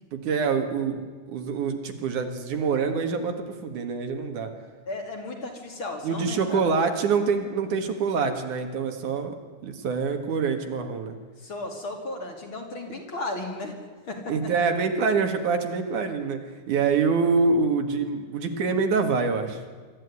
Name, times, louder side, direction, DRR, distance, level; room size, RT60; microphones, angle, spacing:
voice 1, 0.1-1.0 1.3-4.5 6.0-9.3 9.6-11.2 14.3-16.4 16.7-19.6, right 5 dB, 65° right, 6 dB, 3.1 m, -25 dB
voice 2, 4.9-6.6 11.4-13.7 14.1-14.3, left 2 dB, 40° left, 2 dB, 3.1 m, -34 dB
24.5 x 13.5 x 9.6 m, 1.5 s
omnidirectional pair, 3.9 m